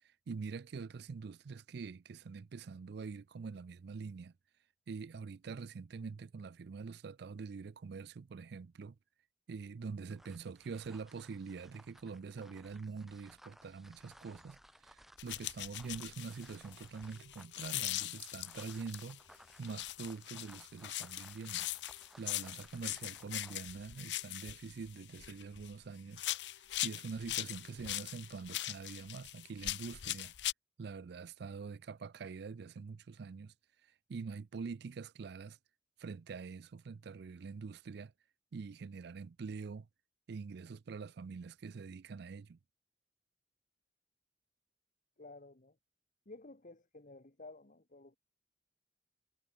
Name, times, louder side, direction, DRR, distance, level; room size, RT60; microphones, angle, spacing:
voice 1, 0.0-4.3 4.9-9.0 9.5-19.2 19.6-21.7 22.2-26.2 26.8-30.3 30.8-33.5 34.1-35.6 36.0-38.1 38.5-39.9 40.3-42.6, right 5 dB, 65° right, 0.4 m, -45 dB
sound 1, 10.1-23.7, equal, ahead, 0.7 m, -61 dB
sound 2, 15.2-19.2 19.6-25.8 26.1-30.5, left 15 dB, 80° left, 0.6 m, -41 dB
voice 2, 45.2-45.8 46.2-48.2, left 2 dB, 50° left, 1.6 m, -53 dB
head